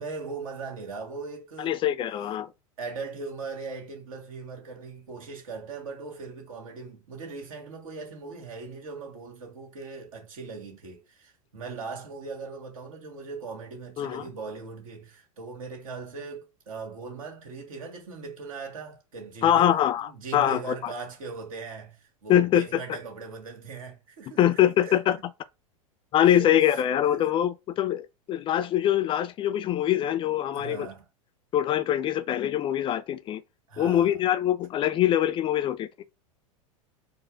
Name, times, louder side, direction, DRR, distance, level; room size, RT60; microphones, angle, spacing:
voice 1, 0.0-1.8 2.8-25.0 26.3-26.5 27.1-27.3 30.5-31.1 33.7-34.2, right 4 dB, 75° right, 1.6 m, -39 dB
voice 2, 1.6-2.5 14.0-14.2 19.4-20.9 22.3-22.8 24.4-25.2 26.1-30.9 31.5-33.4 33.8-36.0, left 11 dB, 30° left, 0.4 m, -24 dB
4.2 x 2.0 x 3.5 m
hypercardioid pair, 90°, 18 cm